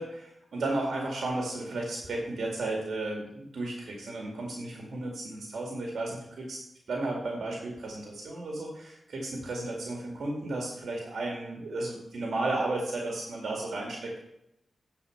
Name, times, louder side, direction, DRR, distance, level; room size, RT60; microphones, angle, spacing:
voice 1, 0.0-6.6 6.9-14.2, right 2 dB, 75° right, -1 dB, 2.1 m, -34 dB
9.8 x 4.7 x 6.4 m, 0.82 s
cardioid pair, 70°, 0 cm